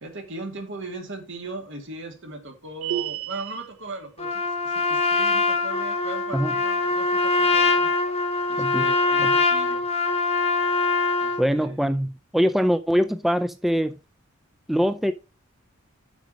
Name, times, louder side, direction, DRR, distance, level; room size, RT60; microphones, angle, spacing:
voice 1, 0.0-7.9 8.5-9.8 11.2-11.9, right 3 dB, 65° right, 2.3 m, -38 dB
sound 1, 2.8-3.7, right 12 dB, 80° right, 0.9 m, -30 dB
Trumpet, 4.2-11.4, left 4 dB, 30° left, 1.2 m, -23 dB
voice 2, 11.4-14.0 14.7-15.1, equal, ahead, 0.3 m, -23 dB
7.3 x 6.2 x 4.9 m
head